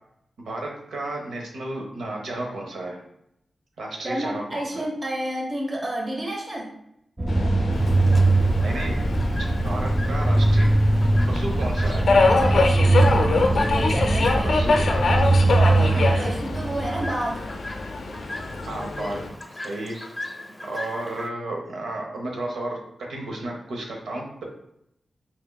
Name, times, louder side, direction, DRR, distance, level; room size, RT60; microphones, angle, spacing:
voice 1, 0.4-3.0 3.8-4.8 8.6-9.2 9.6-10.7 11.3-12.1 14.4-14.9 15.6-16.4 18.7-19.3 19.6-20.0 20.6-22.8 23.1-24.4, right 2 dB, 85° right, 0 dB, 0.8 m, -32 dB
voice 2, 4.0-6.7 12.3-14.8 15.6-17.5, right 1 dB, 40° right, -1 dB, 0.9 m, -31 dB
sound 1, 7.2-17.1, right 2 dB, 20° right, 0.6 m, -21 dB
Subway metro underground, 7.3-19.3, left 3 dB, 75° left, 0.4 m, -25 dB
Chirp tweet, 7.7-21.3, left 1 dB, 20° left, 0.6 m, -39 dB
4.4 x 3.5 x 2.3 m, 0.77 s
cardioid pair, 40°, 0 cm